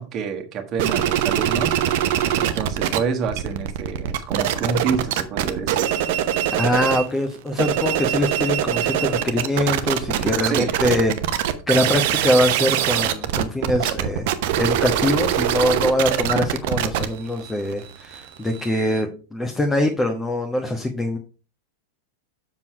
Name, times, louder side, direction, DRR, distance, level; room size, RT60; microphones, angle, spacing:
voice 1, 0.0-1.7 2.4-5.9 10.4-10.7, right 5 dB, 30° right, 3 dB, 1.6 m, -27 dB
sound 1, 0.8-3.0 3.2-7.1 7.5-19.0, right 11 dB, 50° right, 0.9 m, -23 dB
voice 2, 6.5-14.3 14.6-21.2, left 1 dB, 10° left, 4 dB, 1.2 m, -23 dB
7.5 x 6.2 x 4.6 m, 0.36 s
figure-of-eight pair, 90°, 0 cm